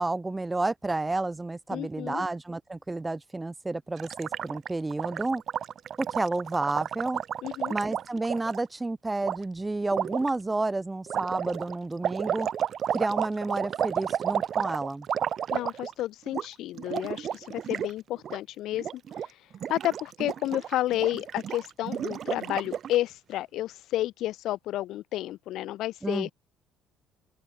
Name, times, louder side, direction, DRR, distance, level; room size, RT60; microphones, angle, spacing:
voice 1, 0.0-5.4 6.0-7.2 7.7-12.5 12.9-15.1 26.0-26.3, right 2 dB, 10° right, 0.6 m, -30 dB
voice 2, 1.7-2.2 7.4-7.7 15.5-19.4 19.7-26.3, left 14 dB, 55° left, 1.3 m, -31 dB
Gurgling, 4.0-8.6 9.2-9.4 9.9-10.3 11.1-16.0 16.3-16.5 16.7-17.9 18.2-18.4 18.7-19.3 19.5-23.0, right 9 dB, 35° right, 1.2 m, -32 dB
open air
cardioid pair, 175°, 0 cm